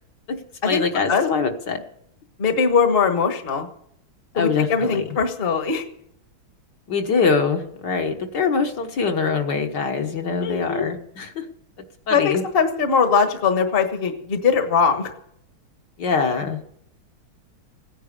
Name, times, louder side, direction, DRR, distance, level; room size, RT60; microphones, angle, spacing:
voice 1, 0.7-1.8 4.3-5.1 6.9-11.5 12.1-12.4 16.0-16.6, left 5 dB, 55° left, 4 dB, 1.9 m, -23 dB
voice 2, 2.4-3.7 4.3-5.8 10.4-10.9 12.1-15.1, left 5 dB, 30° left, 7 dB, 1.4 m, -21 dB
17.0 x 10.0 x 6.7 m, 0.71 s
omnidirectional pair, 2.3 m